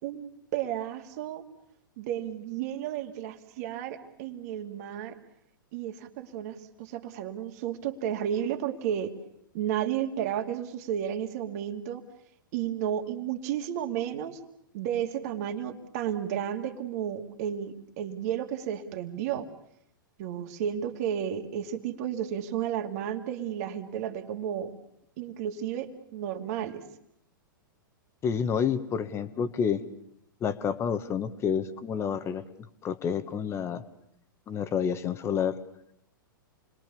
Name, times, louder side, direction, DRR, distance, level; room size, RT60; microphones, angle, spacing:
voice 1, 0.0-1.4 2.0-5.2 5.7-9.2 9.5-12.0 12.5-14.4 14.7-19.5 20.2-24.7 25.2-26.8, right 10 dB, 45° right, 6 dB, 2.4 m, -32 dB
voice 2, 28.2-29.8 30.4-32.4 32.8-33.8 34.5-35.6, left 7 dB, 25° left, 11 dB, 1.6 m, -29 dB
29.0 x 22.0 x 7.1 m, 0.74 s
figure-of-eight pair, 105°, 11 cm